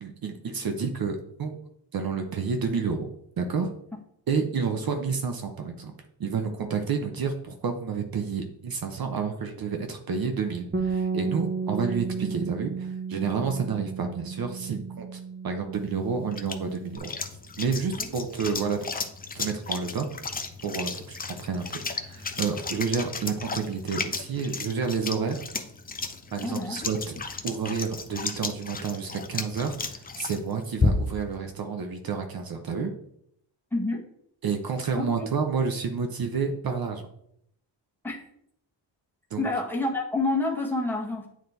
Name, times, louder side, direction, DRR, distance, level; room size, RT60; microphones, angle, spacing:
voice 1, 0.0-1.6 1.9-3.1 3.4-3.7 4.3-5.9 6.2-17.1 17.6-18.9 19.3-20.1 20.6-25.4 26.3-27.2 27.4-32.9 34.4-37.1 39.3-39.5, right 5 dB, 55° right, 5 dB, 0.8 m, -30 dB
Bass guitar, 10.7-17.0, right 5 dB, 25° right, 0.6 m, -33 dB
sound 1, 15.8-31.3, left 4 dB, 20° left, 0.5 m, -34 dB
voice 2, 26.4-26.8 33.7-34.0 35.0-35.3 38.0-38.2 39.4-41.3, left 2 dB, 5° left, -3 dB, 1.2 m, -28 dB
8.8 x 3.1 x 4.0 m, 0.72 s
cardioid pair, 105°, 44 cm